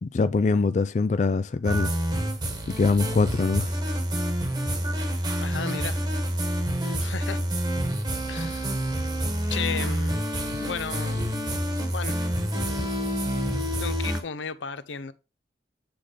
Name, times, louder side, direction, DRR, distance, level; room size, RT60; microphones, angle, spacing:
voice 1, 0.0-1.9 2.7-3.8 12.8-12.9, left 4 dB, 40° left, 0.3 m, -23 dB
sound 1, 1.6-14.2, equal, 25° right, 1.4 m, -28 dB
voice 2, 5.4-6.0 7.0-7.4 8.3-8.7 9.5-10.3 10.6-11.4 11.9-12.2 13.8-15.1, left 6 dB, 80° left, 0.6 m, -34 dB
8.7 x 3.8 x 5.0 m
head